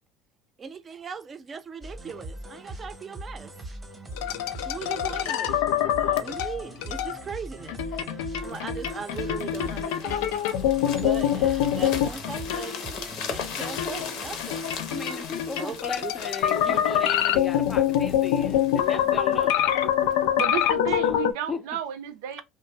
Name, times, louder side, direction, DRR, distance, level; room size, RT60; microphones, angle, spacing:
voice 1, 0.6-3.8 4.7-5.6 5.9-8.0 8.4-10.3 11.0-14.6 15.1-15.2 15.6-16.1 16.7-17.1, right 6 dB, 30° right, 0.4 m, -39 dB
sound 1, 1.8-15.7, right 1 dB, 10° right, 0.8 m, -41 dB
sound 2, 4.2-7.2 7.7-13.0 13.4-21.3, left 10 dB, 90° left, 0.3 m, -25 dB
sound 3, 8.4-20.2 20.8-21.0, left 6 dB, 65° left, 0.7 m, -39 dB
voice 2, 14.9-19.7 21.5-21.6, left 4 dB, 25° left, 0.5 m, -36 dB
voice 3, 20.4-22.4, right 9 dB, 90° right, 0.5 m, -32 dB
2.6 x 2.0 x 3.2 m
supercardioid pair, 120°, 0 cm